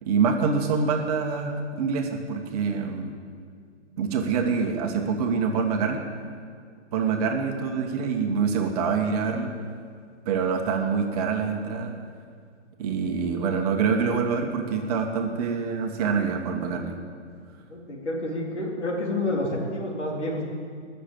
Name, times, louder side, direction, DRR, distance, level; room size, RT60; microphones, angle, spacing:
voice 1, 0.0-3.1 4.0-6.0 6.9-9.5 10.2-11.9 12.8-17.0, right 5 dB, 35° right, 3 dB, 1.4 m, -25 dB
voice 2, 17.7-20.4, left 1 dB, 75° left, -2 dB, 3.7 m, -29 dB
19.5 x 6.9 x 7.7 m, 2.1 s
figure-of-eight pair, 125°, 35 cm